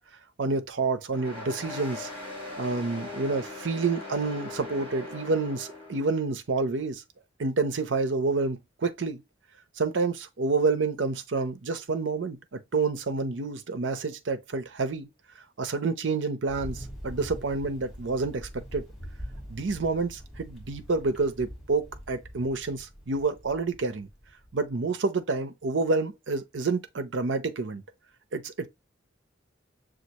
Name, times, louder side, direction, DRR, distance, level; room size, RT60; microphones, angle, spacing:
voice 1, 0.4-2.1 2.6-7.0 7.4-9.2 9.8-15.1 15.6-18.8 19.5-24.1 24.5-27.8 28.3-28.7, right 3 dB, 75° right, 0.7 m, -28 dB
sound 1, 1.1-6.2, left 2 dB, 30° right, 3.3 m, -40 dB
Thunder, 16.5-24.7, equal, ahead, 2.0 m, -43 dB
6.4 x 2.5 x 2.9 m
head